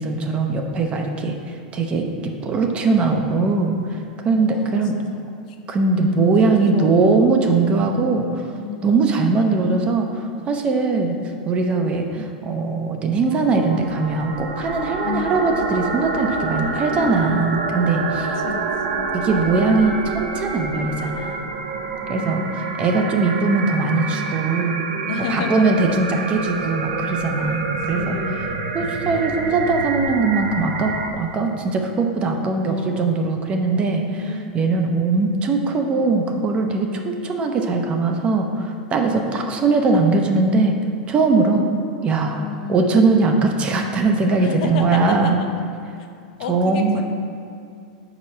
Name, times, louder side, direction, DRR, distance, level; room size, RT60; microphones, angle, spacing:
voice 1, 0.0-3.8 4.2-4.9 5.7-8.4 8.8-11.2 11.4-18.3 19.1-21.4 22.1-24.9 25.3-28.5 28.7-40.7 41.1-41.6 42.0-42.4 42.7-45.4 46.5-47.0, right 3 dB, 25° right, 3 dB, 0.5 m, -20 dB
voice 2, 0.9-1.4 4.4-4.8 5.1-5.2 5.8-6.1 6.6-7.0 8.1-8.3 8.6-9.2 15.0-15.5 16.6-17.5 18.4-18.6 18.9-19.1 22.0-22.7 25.1-26.0 27.5-27.6 27.9-28.5 32.4-33.1 33.8-34.5 39.2-39.6 42.4-42.9 44.4-45.5 46.0-46.1 46.4-47.0, left 5 dB, 70° left, 4 dB, 0.6 m, -32 dB
sound 1, 13.3-31.1, right 4 dB, 80° right, 0.6 m, -27 dB
4.9 x 4.2 x 5.6 m, 2.4 s
supercardioid pair, 140°, 4 cm